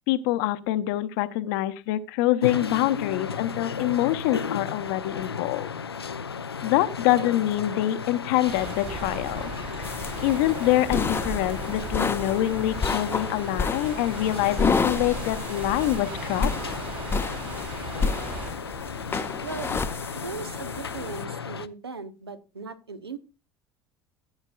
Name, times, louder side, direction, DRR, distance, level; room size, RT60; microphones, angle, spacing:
voice 1, 0.1-5.7 6.6-9.5 10.2-16.5, left 14 dB, 60° left, 13 dB, 0.8 m, -25 dB
sound 1, 2.4-21.7, left 6 dB, 85° left, 0.4 m, -34 dB
sound 2, 8.5-18.5, right 4 dB, 40° right, 2.9 m, -38 dB
sound 3, 9.8-21.2, left 4 dB, 20° left, 0.7 m, -31 dB
voice 2, 20.1-23.2, right 4 dB, 85° right, 11 dB, 0.9 m, -38 dB
14.5 x 8.9 x 2.3 m, 0.29 s
figure-of-eight pair, 70°, 13 cm